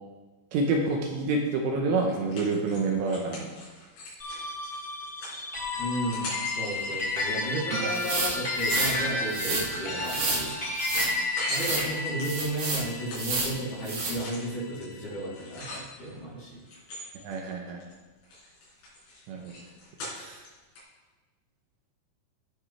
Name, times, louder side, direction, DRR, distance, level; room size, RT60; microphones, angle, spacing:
voice 1, 0.5-3.5 7.7-7.9 17.1-17.8 19.3-19.5 20.1-20.4, right 3 dB, 75° right, 1 dB, 3.0 m, -28 dB
sound 1, 2.1-7.9 8.4-9.0 9.2-16.2 16.7-18.0 18.2-20.5 20.8-20.9, left 1 dB, 70° left, 6.7 m, -40 dB
sound 2, 4.2-14.8, left 2 dB, 15° left, 2.9 m, -32 dB
voice 2, 5.8-10.5 11.5-16.6, right 1 dB, 40° left, -7 dB, 4.1 m, -33 dB
sound 3, 7.9-8.9 9.3-9.6 10.1-10.4 10.8-11.1 11.5-11.9 12.2-12.8 13.1-13.5 13.9-14.1, right 3 dB, 50° right, 2.9 m, -30 dB
17.5 x 8.5 x 3.3 m, 1.2 s
omnidirectional pair, 5.6 m